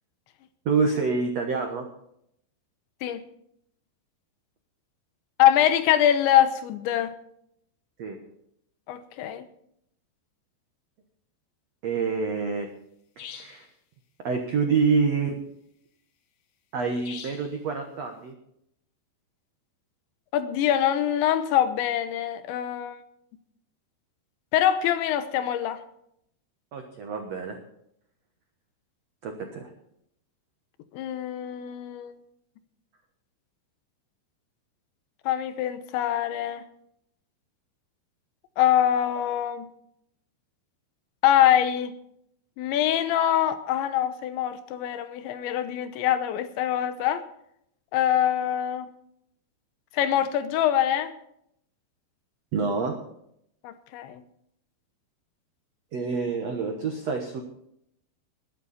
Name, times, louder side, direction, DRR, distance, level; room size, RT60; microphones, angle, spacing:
voice 1, 0.6-1.8 8.0-8.2 11.8-12.7 13.2-13.7 14.2-15.4 16.7-18.3 26.7-27.6 29.2-29.7 52.5-52.9 55.9-57.4, right 5 dB, 75° right, 3 dB, 1.5 m, -27 dB
voice 2, 5.4-7.1 8.9-9.5 20.3-23.0 24.5-25.8 30.9-32.2 35.3-36.6 38.6-39.7 41.2-41.9 42.6-47.2 47.9-48.9 49.9-51.1 53.6-54.2, left 11 dB, 85° left, 10 dB, 3.3 m, -24 dB
sound 1, 13.2-13.7 17.1-17.5, left 8 dB, 65° left, 2.0 m, -42 dB
21.0 x 9.6 x 4.2 m, 0.73 s
omnidirectional pair, 5.2 m